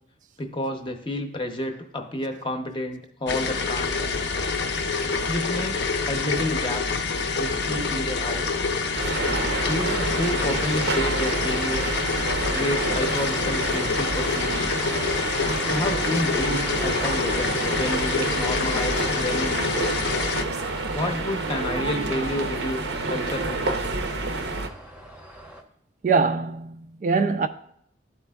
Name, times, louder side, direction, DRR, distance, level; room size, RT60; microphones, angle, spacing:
voice 1, 0.4-4.1 5.3-7.1 7.4-8.6 9.7-12.0 12.5-14.7 15.7-17.5 17.8-20.0 20.9-23.8, left 1 dB, 25° left, 0.7 m, -30 dB
sound 1, 3.3-20.4, left 4 dB, 80° left, 0.6 m, -26 dB
sound 2, 8.9-24.7, right 3 dB, 75° right, 0.7 m, -29 dB
sound 3, 9.1-25.6, equal, 5° right, 0.7 m, -42 dB
voice 2, 26.0-27.5, right 4 dB, 45° right, 0.3 m, -23 dB
12.5 x 4.3 x 2.3 m
head